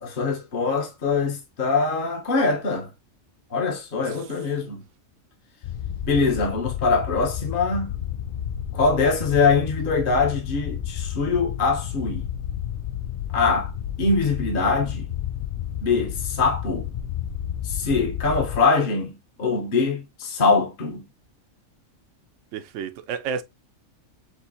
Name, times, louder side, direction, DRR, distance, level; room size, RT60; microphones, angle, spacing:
voice 1, 0.0-2.9 3.5-4.8 6.1-7.9 8.7-12.3 13.3-13.7 14.0-15.0 15.8-16.9 17.6-21.0, left 4 dB, 40° left, 1.2 m, -23 dB
sound 1, 5.6-18.6, left 10 dB, 75° left, 0.4 m, -31 dB
voice 2, 22.5-23.4, right 6 dB, 70° right, 0.9 m, -32 dB
6.2 x 2.9 x 2.7 m
omnidirectional pair, 1.4 m